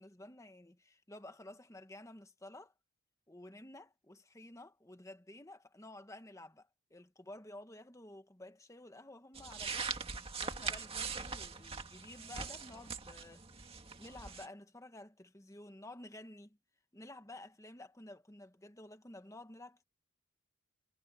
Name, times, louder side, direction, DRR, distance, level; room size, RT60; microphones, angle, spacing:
voice 1, 0.0-2.7 3.3-10.0 10.4-13.4 14.0-16.6 16.9-19.8, left 1 dB, 15° left, 1.4 m, -52 dB
sound 1, 9.4-14.5, right 5 dB, 25° right, 2.2 m, -42 dB
head